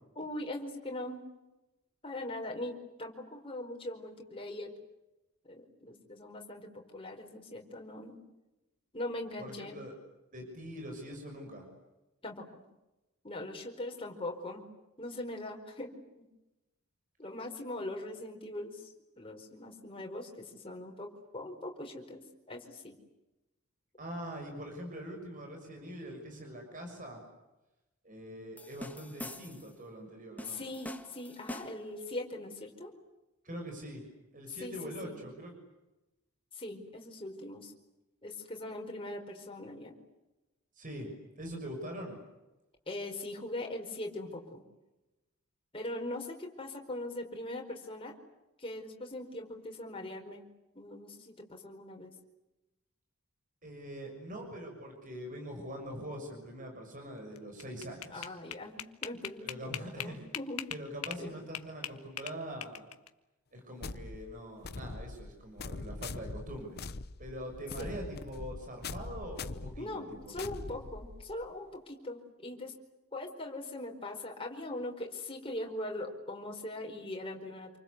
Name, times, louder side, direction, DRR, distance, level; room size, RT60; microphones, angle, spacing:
voice 1, 0.1-1.3 2.0-4.7 5.4-8.2 8.9-9.8 12.2-12.6 13.2-14.7 15.0-16.3 17.2-23.0 30.4-32.9 34.5-35.2 36.5-37.7 38.2-39.9 42.9-44.6 45.7-48.2 48.6-50.5 50.7-52.1 58.1-60.7 61.2-61.3 67.8-68.0 69.8-72.7 73.1-77.8, left 1 dB, 25° left, 2 dB, 4.8 m, -41 dB
voice 2, 9.4-9.9 10.3-11.7 24.0-27.2 28.0-30.6 33.4-34.0 34.3-35.5 40.7-42.2 53.6-58.3 59.4-60.2 60.7-62.9 63.5-66.8 67.2-70.3, equal, 40° right, 3 dB, 6.5 m, -43 dB
sound 1, 28.6-29.7 30.4-31.9, left 1 dB, 5° left, 1.8 m, -44 dB
sound 2, 57.4-61.2 61.5-63.1, left 10 dB, 90° left, 1.6 m, -40 dB
sound 3, 63.8-71.5, left 3 dB, 45° left, 0.9 m, -43 dB
28.5 x 25.0 x 8.3 m, 1.0 s
head